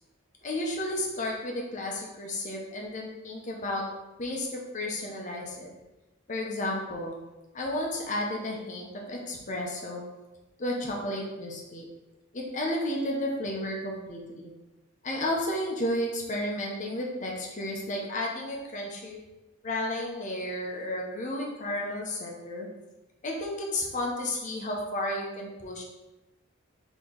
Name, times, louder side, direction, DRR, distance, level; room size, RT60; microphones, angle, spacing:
voice 1, 0.4-3.8 4.2-5.7 6.3-7.2 7.5-10.0 10.6-11.9 12.3-14.5 15.0-19.2 19.6-22.7 23.2-25.8, left 1 dB, 35° left, -1 dB, 0.8 m, -32 dB
4.4 x 3.0 x 3.8 m, 1.0 s
head